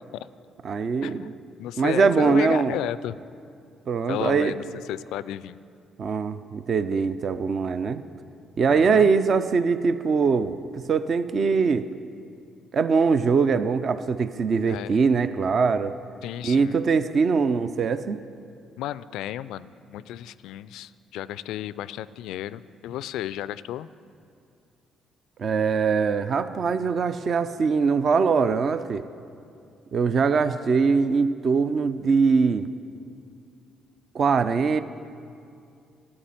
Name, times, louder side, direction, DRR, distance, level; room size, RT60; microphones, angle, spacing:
voice 1, 0.6-1.3 1.8-2.8 3.9-4.5 6.0-8.0 8.6-11.9 12.7-16.0 16.4-18.2 25.4-29.0 29.9-32.7 34.1-34.8, right 5 dB, 50° right, 12 dB, 0.5 m, -22 dB
voice 2, 1.6-3.2 4.1-4.6 4.9-5.6 8.7-9.1 14.7-15.0 16.2-16.8 18.8-23.9, left 12 dB, 65° left, 17 dB, 0.3 m, -33 dB
13.5 x 8.7 x 9.2 m, 2.4 s
figure-of-eight pair, 45°, 0 cm